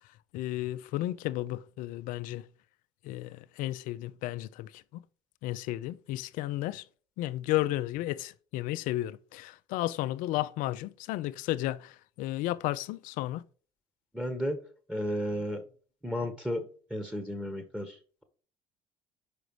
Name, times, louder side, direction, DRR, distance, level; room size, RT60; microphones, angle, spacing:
voice 1, 0.3-2.4 3.0-4.7 5.4-6.8 7.2-13.4, left 16 dB, 70° left, 0.4 m, -33 dB
voice 2, 14.1-14.6 14.9-15.6 16.0-18.2, equal, 5° right, 1.3 m, -33 dB
5.1 x 4.9 x 4.7 m
hypercardioid pair, 65°, 15 cm